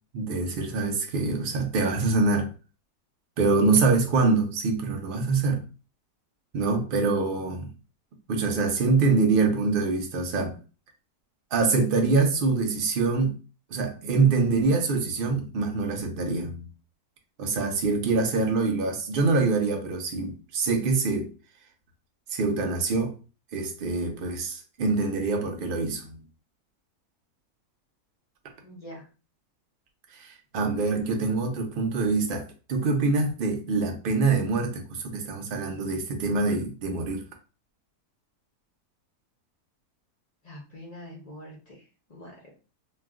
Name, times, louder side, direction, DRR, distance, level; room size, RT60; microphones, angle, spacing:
voice 1, 0.1-2.5 3.4-5.6 6.5-7.7 8.3-10.6 11.5-13.4 13.7-16.7 17.4-21.3 22.3-23.1 23.5-26.2 30.2-37.2, right 3 dB, 70° right, 0.5 m, -25 dB
voice 2, 28.6-29.0 40.4-41.8 42.1-42.4, equal, 55° left, 0.4 m, -44 dB
2.3 x 2.3 x 3.5 m
omnidirectional pair, 1.6 m